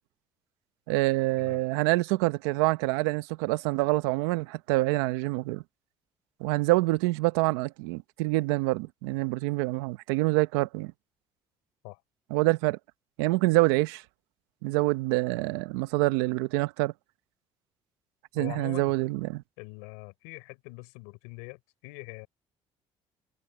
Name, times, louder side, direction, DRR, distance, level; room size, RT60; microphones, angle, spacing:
voice 1, 0.9-5.6 6.4-10.9 12.3-12.8 13.2-14.0 14.6-16.9 18.3-19.4, right 20 dB, 90° right, 1.1 m, -26 dB
voice 2, 18.4-18.9 19.6-22.3, left 29 dB, 90° left, 3.8 m, -43 dB
supercardioid pair, 75°, 13 cm